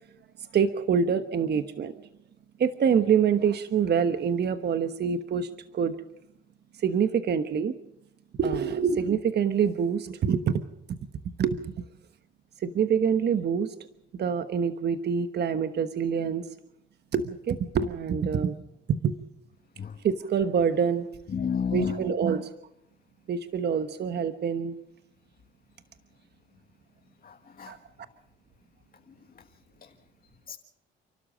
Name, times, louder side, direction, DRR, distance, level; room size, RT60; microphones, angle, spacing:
voice 1, 0.5-1.9 2.6-6.0 6.7-7.7 8.4-10.6 10.9-11.0 11.4-11.7 12.6-13.7 14.1-16.4 17.1-18.6 18.9-19.2 20.0-21.1 21.7-22.5 23.3-24.8 27.7-27.8, right 7 dB, 55° right, 10 dB, 1.2 m, -26 dB
voice 2, 21.3-21.9 27.2-27.7 30.5-30.6, left 6 dB, 45° left, 4 dB, 1.7 m, -30 dB
29.5 x 12.5 x 7.6 m, 0.80 s
cardioid pair, 90°, 20 cm